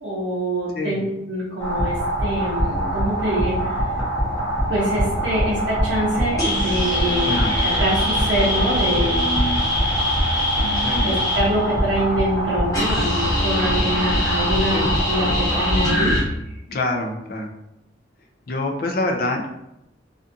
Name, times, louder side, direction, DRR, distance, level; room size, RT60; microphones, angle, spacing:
voice 1, 0.0-3.9 4.7-9.3 10.6-16.2, equal, 65° right, -9 dB, 0.7 m, -25 dB
sound 1, 1.6-16.2, equal, 20° left, 0.8 m, -22 dB
voice 2, 10.8-11.2 14.7-14.9 16.7-17.5 18.5-19.5, left 2 dB, 50° left, 2 dB, 0.4 m, -25 dB
2.5 x 2.4 x 2.6 m, 0.85 s
head